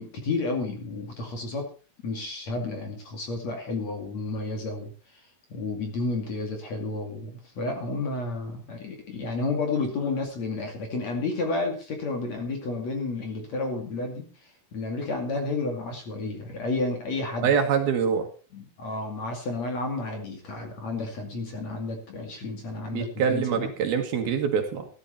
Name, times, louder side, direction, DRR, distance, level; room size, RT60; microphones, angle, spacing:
voice 1, 0.0-1.7 2.0-17.5 18.5-23.7, left 3 dB, 45° left, 3 dB, 3.1 m, -31 dB
voice 2, 17.4-18.3 22.9-24.9, right 7 dB, 65° right, 5 dB, 3.3 m, -24 dB
14.5 x 12.0 x 4.3 m, 0.36 s
omnidirectional pair, 5.0 m